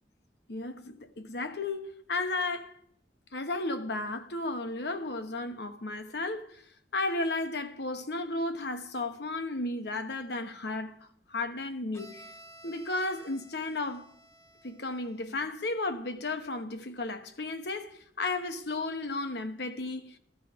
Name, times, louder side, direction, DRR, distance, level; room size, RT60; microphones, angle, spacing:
voice 1, 0.5-2.8 3.3-6.6 6.9-12.2 12.6-14.1 14.6-20.2, left 2 dB, 65° left, 1.0 m, -34 dB
Bowed string instrument, 11.9-15.7, right 1 dB, 15° left, 1.0 m, -54 dB
14.5 x 12.5 x 5.1 m
head